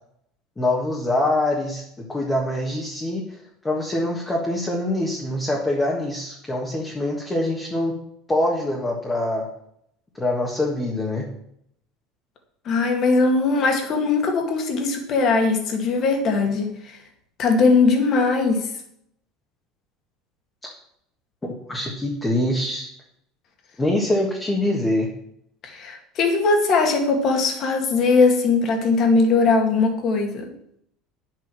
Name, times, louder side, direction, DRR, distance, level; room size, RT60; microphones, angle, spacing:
voice 1, 0.6-1.8 2.1-3.2 3.6-7.9 8.3-9.5 10.2-11.3 21.7-22.9 23.8-25.1, left 1 dB, 10° left, -1 dB, 1.5 m, -24 dB
voice 2, 12.7-17.0 17.4-18.7 25.6-30.5, left 4 dB, 35° left, 4 dB, 2.1 m, -20 dB
10.5 x 7.6 x 6.2 m, 0.73 s
cardioid pair, 175°, 0 cm